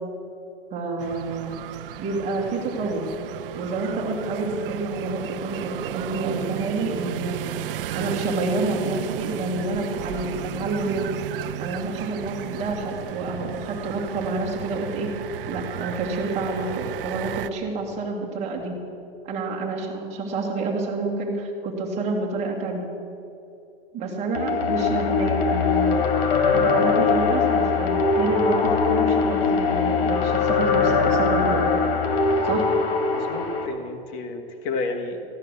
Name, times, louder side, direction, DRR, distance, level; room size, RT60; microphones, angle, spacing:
voice 1, 0.7-1.5 2.0-3.1 3.5-7.4 7.9-11.1 11.6-15.1 15.5-18.8 19.2-22.8 23.9-26.0 26.5-31.6 32.4-32.7, right 3 dB, 20° right, -2 dB, 2.3 m, -28 dB
sound 1, 1.0-17.5, right 11 dB, 65° right, 0.7 m, -34 dB
sound 2, 24.3-33.7, left 5 dB, 85° left, 2.2 m, -21 dB
voice 2, 33.1-35.2, left 3 dB, 35° left, 4 dB, 1.4 m, -31 dB
14.5 x 10.5 x 6.9 m, 2.7 s
supercardioid pair, 160°, 30 cm